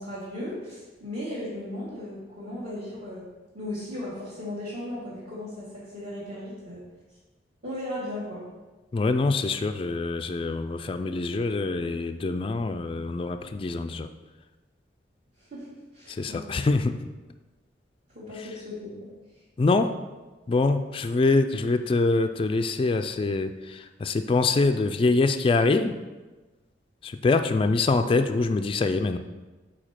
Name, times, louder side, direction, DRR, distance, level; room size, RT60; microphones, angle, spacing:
voice 1, 0.0-3.3 3.5-6.8 7.6-8.5 15.4-16.5 18.1-19.1, left 1 dB, 45° right, -9 dB, 1.7 m, -36 dB
voice 2, 8.9-14.1 16.1-16.9 18.4-18.5 19.6-20.0 20.5-26.0 27.0-29.2, left 3 dB, 30° left, 7 dB, 0.3 m, -24 dB
5.0 x 4.3 x 5.7 m, 1.2 s
head